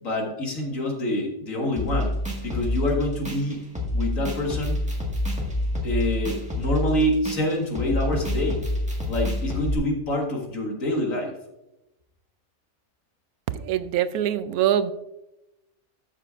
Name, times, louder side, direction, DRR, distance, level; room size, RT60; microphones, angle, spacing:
voice 1, 0.0-2.1 2.4-3.6 3.9-4.8 5.8-8.6 9.1-11.4, left 1 dB, 60° left, 1 dB, 2.1 m, -26 dB
sound 1, 1.8-9.7, left 1 dB, 5° right, 1.4 m, -28 dB
voice 2, 13.5-14.9, right 10 dB, 80° right, 13 dB, 1.1 m, -24 dB
13.0 x 6.7 x 2.4 m, 0.91 s
omnidirectional pair, 1.6 m